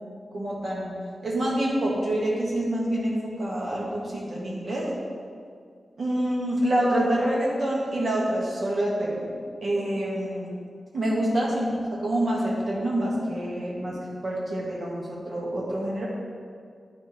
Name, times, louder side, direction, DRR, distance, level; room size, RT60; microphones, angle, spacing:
voice 1, 0.3-0.9 1.2-4.9 6.0-9.3 9.6-10.5 10.9-14.0 14.2-16.1, right 1 dB, 55° right, -4 dB, 1.7 m, -26 dB
9.8 x 4.5 x 4.3 m, 2.1 s
wide cardioid pair, 160°, 0 cm